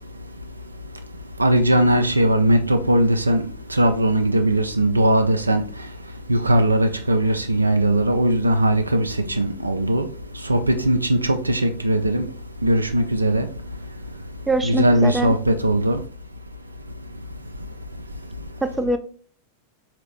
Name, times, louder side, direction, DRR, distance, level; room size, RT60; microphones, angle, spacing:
voice 1, 1.4-5.9 6.3-12.3 12.6-13.5 14.6-16.0, right 1 dB, 80° right, 0.5 m, -19 dB
voice 2, 14.5-15.3 18.6-19.0, right 2 dB, 5° right, 0.4 m, -23 dB
3.9 x 2.9 x 3.5 m
figure-of-eight pair, 90°, 0 cm